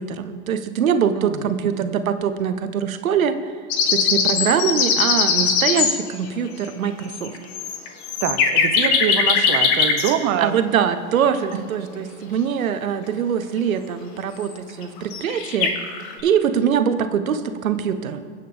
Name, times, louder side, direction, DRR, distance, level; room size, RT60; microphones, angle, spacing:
voice 1, 0.0-3.4 3.9-7.3 10.4-15.7 16.2-18.2, right 7 dB, 70° right, 10 dB, 1.1 m, -23 dB
sound 1, 3.7-6.0 6.8-6.9 7.1-10.1 14.4-14.5 14.8-14.9 15.1-16.2, left 6 dB, 45° left, 1.7 m, -20 dB
voice 2, 8.2-10.6, right 10 dB, 35° right, 10 dB, 1.0 m, -24 dB
23.0 x 8.6 x 3.4 m, 2.1 s
figure-of-eight pair, 100°, 43 cm